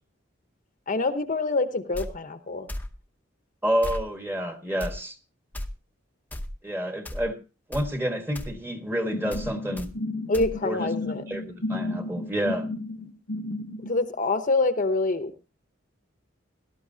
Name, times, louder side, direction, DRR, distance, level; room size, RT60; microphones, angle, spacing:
voice 1, 0.9-2.7 10.3-11.2 13.8-15.5, left 3 dB, 40° left, 9 dB, 0.9 m, -26 dB
sound 1, 1.9-2.1 2.7-2.9 3.8-4.0 4.8-4.9 5.5-5.7 6.3-6.5 7.0-7.3 7.7-7.9 8.3-8.5 9.3-9.5 9.8-9.9 10.3-10.5, left 1 dB, 10° left, 0.8 m, -34 dB
voice 2, 3.6-5.2 6.6-7.4 7.7-9.9 10.6-10.9 11.3-12.7, equal, 10° right, 6 dB, 1.4 m, -29 dB
sound 2, 9.1-13.9, left 2 dB, 70° left, 1.0 m, -33 dB
17.5 x 12.5 x 2.7 m, 0.30 s
head